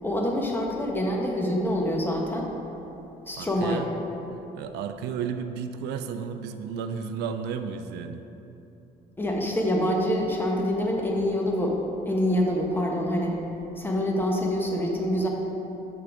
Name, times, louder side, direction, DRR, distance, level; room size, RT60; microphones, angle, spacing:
voice 1, 0.0-2.5 3.3-3.9 9.2-11.8 12.0-13.4 13.8-15.3, equal, 10° left, -1 dB, 1.0 m, -26 dB
voice 2, 3.4-3.9 4.5-8.2, right 6 dB, 80° right, 8 dB, 0.4 m, -33 dB
6.6 x 3.9 x 6.1 m, 3.0 s
cardioid pair, 110°, 17 cm